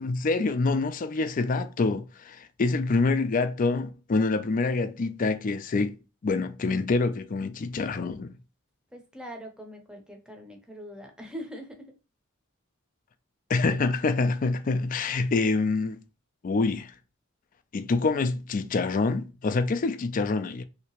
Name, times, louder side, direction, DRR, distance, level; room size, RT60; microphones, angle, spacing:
voice 1, 0.0-6.0 6.2-8.3 13.5-16.0 16.4-16.9 17.7-20.6, left 3 dB, 40° left, 0.4 m, -26 dB
voice 2, 8.9-11.9, equal, 5° right, 0.7 m, -42 dB
3.3 x 2.8 x 2.9 m
head